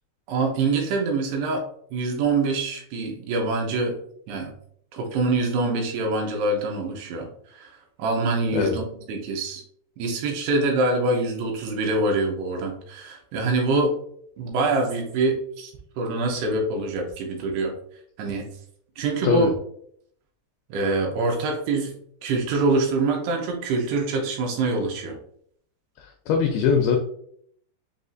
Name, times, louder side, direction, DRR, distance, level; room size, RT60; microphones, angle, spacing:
voice 1, 0.3-1.7 1.9-4.0 4.3-4.5 4.9-9.6 10.0-14.0 14.4-15.7 16.0-17.7 18.2-18.5 19.0-19.5 20.7-21.9 22.2-25.2, right 3 dB, 85° right, 1 dB, 2.7 m, -25 dB
voice 2, 26.0-27.0, left 6 dB, 85° left, 3 dB, 2.1 m, -22 dB
7.0 x 2.4 x 2.5 m, 0.66 s
omnidirectional pair, 4.9 m